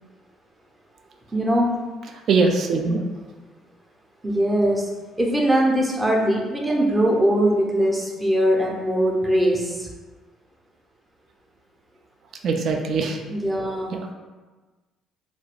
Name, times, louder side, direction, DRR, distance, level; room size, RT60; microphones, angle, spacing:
voice 1, 1.3-1.7 4.2-4.8 5.2-9.9 13.3-14.0, right 1 dB, 15° right, -2 dB, 0.7 m, -21 dB
voice 2, 2.3-3.0 12.4-13.2 13.9-14.0, right 4 dB, 50° right, 3 dB, 0.3 m, -21 dB
2.5 x 2.2 x 3.5 m, 1.3 s
figure-of-eight pair, 50°, 0 cm